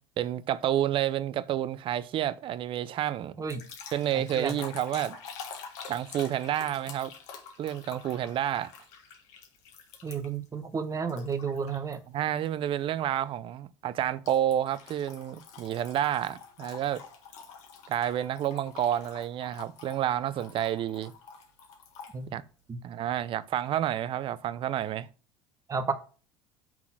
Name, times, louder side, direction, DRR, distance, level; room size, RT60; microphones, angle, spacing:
voice 1, 0.2-3.4 3.9-5.2 5.9-7.1 7.6-8.7 12.1-17.0 17.9-21.1 22.3-22.4 22.8-25.1, right 11 dB, 50° right, 0.5 m, -29 dB
sound 1, 3.5-10.5 11.1-12.0 12.4-12.7 14.3-22.2, left 6 dB, 65° left, 1.5 m, -47 dB
voice 2, 4.1-4.5 10.0-12.0 22.1-22.4 22.7-22.8 25.7-25.9, right 5 dB, 30° right, 1.0 m, -32 dB
5.9 x 3.9 x 5.9 m
hypercardioid pair, 80°, 12 cm